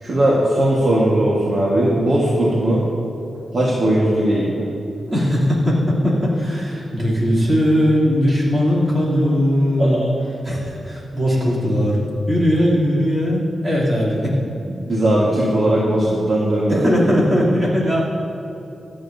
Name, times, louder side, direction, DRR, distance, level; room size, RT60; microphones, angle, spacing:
voice 1, 0.0-2.8 3.5-4.7 9.8-10.0 14.8-16.9, right 1 dB, 40° right, -6 dB, 1.5 m, -18 dB
voice 2, 5.1-10.0 10.4-14.3 16.7-18.0, equal, 25° right, -7 dB, 3.1 m, -19 dB
24.0 x 8.6 x 2.7 m, 2.9 s
wide cardioid pair, 165°, 0 cm